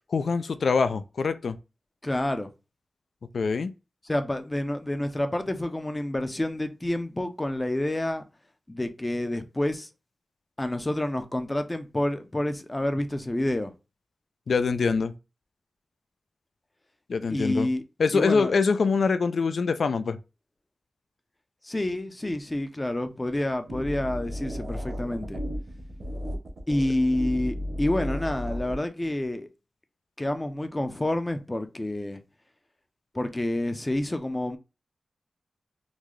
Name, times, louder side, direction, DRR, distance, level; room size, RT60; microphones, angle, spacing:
voice 1, 0.1-1.6 3.3-3.7 14.5-15.1 17.1-17.7 18.0-20.2, left 5 dB, 75° left, 0.3 m, -24 dB
voice 2, 2.0-2.5 4.0-8.2 8.7-9.9 10.6-13.7 17.3-17.8 18.1-18.5 21.6-25.4 26.7-29.5 30.2-32.2 33.1-34.6, left 1 dB, 20° left, 0.5 m, -28 dB
sound 1, 23.7-28.8, equal, 50° right, 0.9 m, -34 dB
3.8 x 2.2 x 3.1 m
wide cardioid pair, 115°, 0 cm